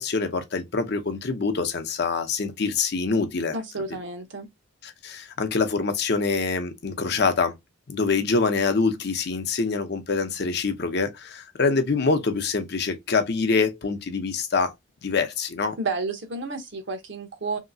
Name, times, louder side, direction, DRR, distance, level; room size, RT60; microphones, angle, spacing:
voice 1, 0.0-3.5 4.8-7.5 7.9-14.7 15.0-15.8, left 4 dB, 55° left, 0.6 m, -25 dB
voice 2, 3.5-4.5 15.8-17.6, right 3 dB, 60° right, 0.8 m, -31 dB
3.1 x 2.8 x 2.6 m
head